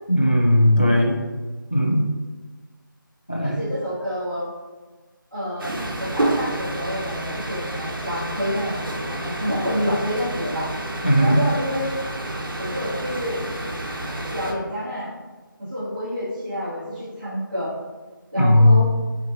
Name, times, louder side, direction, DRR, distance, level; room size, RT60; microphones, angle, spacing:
voice 1, 0.1-1.2 1.7-2.1 3.3-3.5 11.0-11.4 18.4-18.8, left 1 dB, 25° left, -2 dB, 0.4 m, -17 dB
voice 2, 3.4-4.5 5.3-10.7 11.2-11.9 12.6-13.4 14.3-15.1 15.6-17.7 18.3-18.9, equal, 20° right, -15 dB, 1.3 m, -28 dB
sound 1, 5.6-14.5, right 1 dB, 70° right, 0.8 m, -29 dB
6.0 x 2.5 x 2.7 m, 1.3 s
figure-of-eight pair, 180°, 12 cm